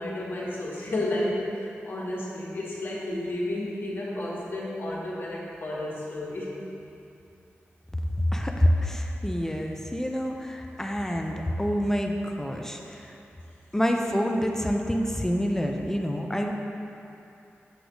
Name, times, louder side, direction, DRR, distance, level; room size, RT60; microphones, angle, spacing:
voice 1, 0.0-1.6 1.9-6.5, left 1 dB, 55° left, -5 dB, 1.6 m, -31 dB
voice 2, 8.2-13.2 13.7-16.5, equal, 10° left, 2 dB, 0.5 m, -27 dB
7.9 x 3.4 x 6.2 m, 2.8 s
wide cardioid pair, 110°, 5 cm